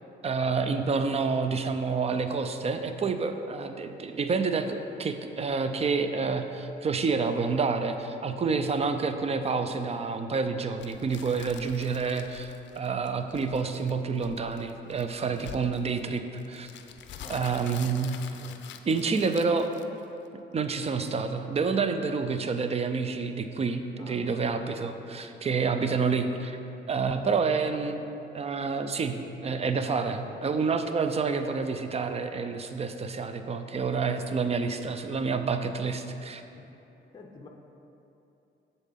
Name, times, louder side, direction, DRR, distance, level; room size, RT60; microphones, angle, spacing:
voice 1, 0.2-16.7 17.3-18.1 18.9-19.7 20.5-26.6 26.9-28.0 28.3-36.4, right 4 dB, 30° right, 8 dB, 0.5 m, -28 dB
sound 1, 10.8-20.3, left 8 dB, 65° left, 0.5 m, -47 dB
voice 2, 17.2-17.6 18.0-18.6 24.0-24.2 36.5-36.7 37.1-37.5, left 3 dB, 20° left, 2 dB, 0.7 m, -49 dB
7.1 x 4.1 x 5.7 m, 2.9 s
cardioid pair, 90°, 20 cm